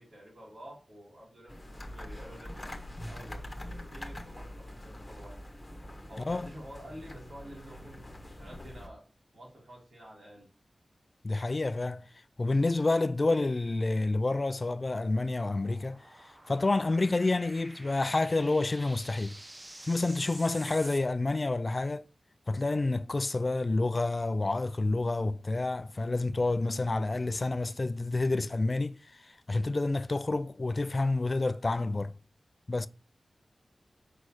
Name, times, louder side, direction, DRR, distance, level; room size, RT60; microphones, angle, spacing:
voice 1, 0.0-5.4 6.1-9.0 9.3-10.5 20.7-20.8, equal, 70° right, 3.8 m, -49 dB
sound 1, 1.5-8.9, left 1 dB, 25° left, 1.3 m, -44 dB
voice 2, 6.2-6.5 11.2-12.0 12.4-19.4 19.9-22.1 22.5-32.1 32.7-32.9, left 2 dB, 45° left, 0.4 m, -29 dB
sound 2, 14.1-21.0, right 1 dB, 30° right, 0.8 m, -50 dB
5.5 x 4.2 x 4.7 m
cardioid pair, 50°, 0 cm